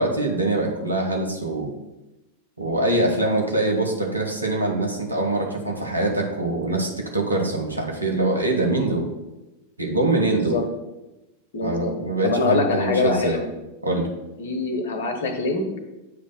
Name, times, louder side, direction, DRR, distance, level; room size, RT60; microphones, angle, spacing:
voice 1, 0.0-1.7 2.6-9.1 9.8-10.6 11.6-13.4 13.8-14.1, right 2 dB, 85° right, 1 dB, 1.0 m, -23 dB
voice 2, 10.2-10.6 11.5-11.9 12.2-13.5 14.4-15.7, left 3 dB, 55° left, 6 dB, 1.0 m, -24 dB
7.9 x 3.2 x 5.5 m, 1.0 s
figure-of-eight pair, 90°, 0 cm